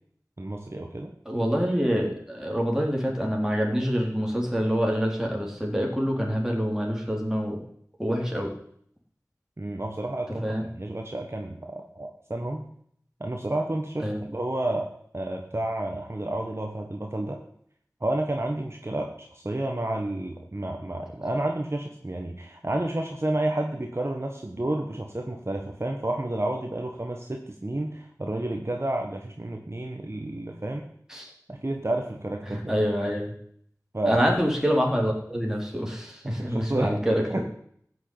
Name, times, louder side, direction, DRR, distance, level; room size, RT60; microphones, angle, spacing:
voice 1, 0.4-1.1 9.6-11.6 11.9-12.7 13.2-17.4 18.0-30.9 31.5-32.7 33.9-34.2 36.2-37.0 37.3-37.4, right 1 dB, 45° right, 2 dB, 1.6 m, -30 dB
voice 2, 1.3-7.6 8.0-8.5 10.4-10.6 14.0-14.2 31.1-31.3 32.5-33.3 34.0-37.2, equal, 10° right, 0 dB, 4.0 m, -26 dB
14.5 x 6.5 x 8.8 m, 0.66 s
wide cardioid pair, 45°, 6 cm